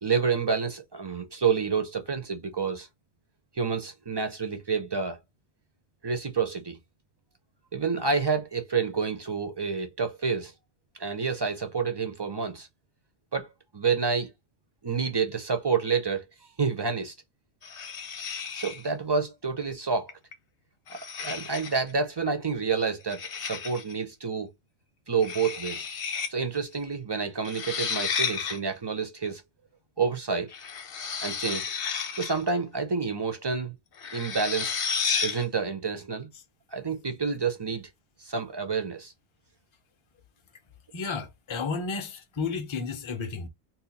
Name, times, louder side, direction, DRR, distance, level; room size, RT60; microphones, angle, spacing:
voice 1, 0.0-2.9 3.5-5.2 6.0-6.8 7.7-10.5 11.0-12.7 13.3-13.5 13.7-14.3 14.8-16.3 16.6-17.1 18.5-20.1 20.9-24.5 25.1-25.9 26.3-29.4 30.0-30.5 31.2-31.7 32.2-33.8 34.1-34.8 35.2-36.3 36.7-37.9 38.2-39.1, right 5 dB, 30° right, 0.5 m, -28 dB
sound 1, 17.6-18.9 20.1-20.3 20.9-21.9 23.1-23.9 25.2-26.3 26.6-26.7 27.4-28.6 30.5-32.5 34.0-35.4, left 6 dB, 60° left, 0.8 m, -32 dB
voice 2, 40.9-43.5, left 4 dB, 35° left, 0.5 m, -32 dB
2.7 x 2.2 x 3.9 m
omnidirectional pair, 1.1 m